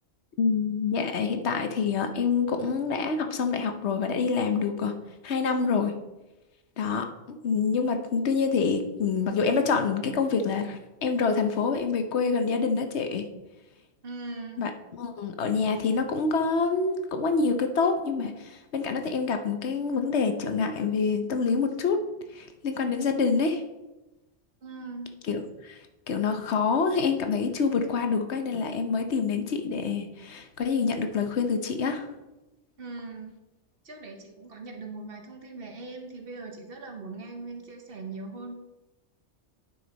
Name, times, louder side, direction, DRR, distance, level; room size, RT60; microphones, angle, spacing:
voice 1, 0.4-5.0 5.2-5.9 6.8-13.3 14.6-14.7 15.0-22.0 22.3-23.6 25.3-25.8 26.1-32.1, left 5 dB, 70° left, 7 dB, 1.0 m, -26 dB
voice 2, 14.0-14.7 24.6-25.1 32.8-33.4 33.8-38.6, right 3 dB, 55° right, 4 dB, 1.2 m, -40 dB
9.4 x 5.5 x 4.0 m, 1.0 s
omnidirectional pair, 1.2 m